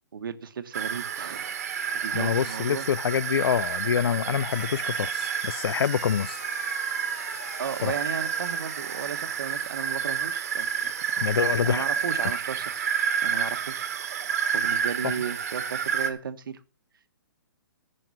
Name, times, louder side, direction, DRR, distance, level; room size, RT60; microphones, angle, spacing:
voice 1, 0.1-1.6 2.0-2.9 7.6-11.1 11.6-12.9 13.2-16.6, right 7 dB, 65° right, 1.3 m, -35 dB
sound 1, 0.7-16.1, right 7 dB, 40° right, 1.4 m, -30 dB
voice 2, 2.1-6.4 7.8-7.9 11.2-11.9 15.0-15.1, left 8 dB, 85° left, 0.5 m, -26 dB
sound 2, 4.5-9.5, left 9 dB, 35° left, 0.7 m, -44 dB
11.0 x 7.7 x 6.2 m
hypercardioid pair, 175°, 12 cm